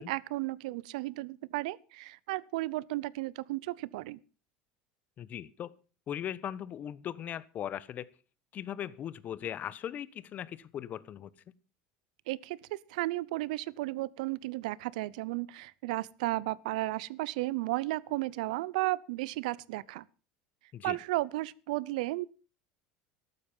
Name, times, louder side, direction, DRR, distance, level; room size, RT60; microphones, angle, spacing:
voice 1, 0.0-4.2 12.3-20.0 20.8-22.3, right 19 dB, 80° right, 0.7 m, -34 dB
voice 2, 5.2-5.8 6.1-8.1 8.5-11.3 20.7-21.0, left 10 dB, 40° left, 1.1 m, -39 dB
13.5 x 12.0 x 5.5 m
supercardioid pair, 110°, 4 cm